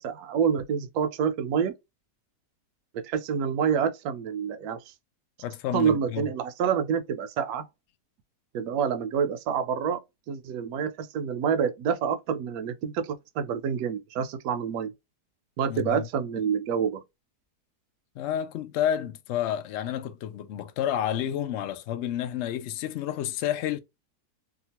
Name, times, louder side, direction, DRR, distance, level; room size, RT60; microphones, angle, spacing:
voice 1, 0.0-1.7 3.0-4.8 5.7-7.7 8.5-10.0 10.3-14.9 15.6-17.0, right 7 dB, 75° right, 1.1 m, -27 dB
voice 2, 5.4-6.3 15.7-16.1 18.2-23.8, left 10 dB, 80° left, 0.6 m, -30 dB
2.9 x 2.3 x 2.8 m
omnidirectional pair, 1.7 m